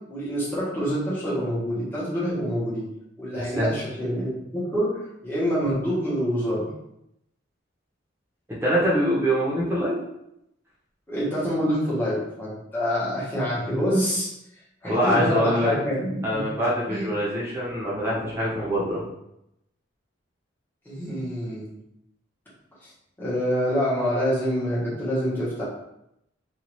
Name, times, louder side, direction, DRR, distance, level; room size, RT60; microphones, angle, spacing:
voice 1, 0.1-2.9 3.2-6.7 11.1-14.3 14.8-16.4 16.9-17.1 20.8-21.8 23.2-25.6, equal, 10° left, -9 dB, 1.1 m, -26 dB
voice 2, 3.4-3.7 8.6-10.0 14.8-15.7 16.2-19.1, equal, 15° right, -7 dB, 0.9 m, -24 dB
2.7 x 2.4 x 3.1 m, 0.81 s
head